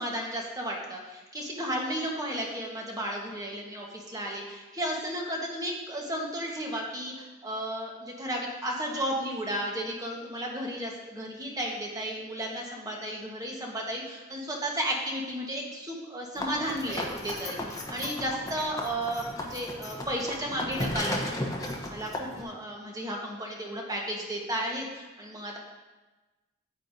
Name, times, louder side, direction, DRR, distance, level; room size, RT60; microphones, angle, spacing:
voice 1, 0.0-21.3 21.9-25.6, equal, 20° right, -1 dB, 1.3 m, -33 dB
sound 1, 16.4-22.4, left 1 dB, 20° left, 0.9 m, -35 dB
8.9 x 8.7 x 2.7 m, 1.2 s
head